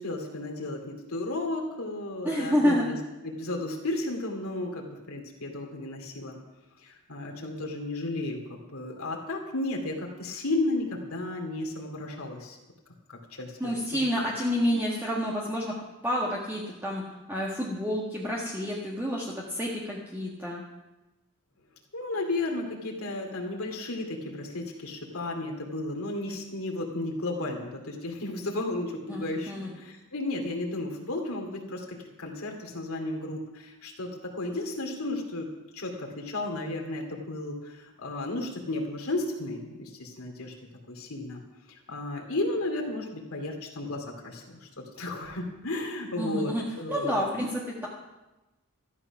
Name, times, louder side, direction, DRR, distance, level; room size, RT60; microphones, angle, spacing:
voice 1, 0.0-3.0 3.2-6.4 6.8-12.6 13.1-14.0 21.9-40.5 40.9-41.4 41.7-47.3, left 2 dB, 75° left, 1 dB, 2.5 m, -33 dB
voice 2, 2.2-2.9 13.6-15.8 16.0-20.6 29.1-29.7 46.2-46.6 46.9-47.9, equal, 10° right, -4 dB, 1.6 m, -29 dB
14.5 x 11.0 x 5.9 m, 1.0 s
head